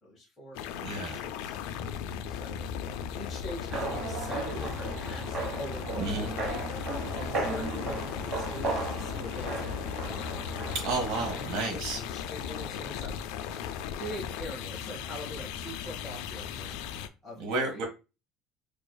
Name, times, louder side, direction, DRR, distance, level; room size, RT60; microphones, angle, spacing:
voice 1, 0.0-1.5 2.2-6.6 7.1-10.3 10.9-11.3 11.7-13.2 14.0-17.8, left 1 dB, 10° left, -7 dB, 1.1 m, -43 dB
sound 1, 0.5-17.1, left 8 dB, 80° left, 0.3 m, -37 dB
voice 2, 0.8-1.2 6.0-6.3 10.8-12.0 17.4-17.8, right 3 dB, 70° right, 2 dB, 0.9 m, -31 dB
sound 2, 3.7-11.5, right 3 dB, 30° right, 1.0 m, -36 dB
4.5 x 2.4 x 2.2 m, 0.28 s
cardioid pair, 165°, 0 cm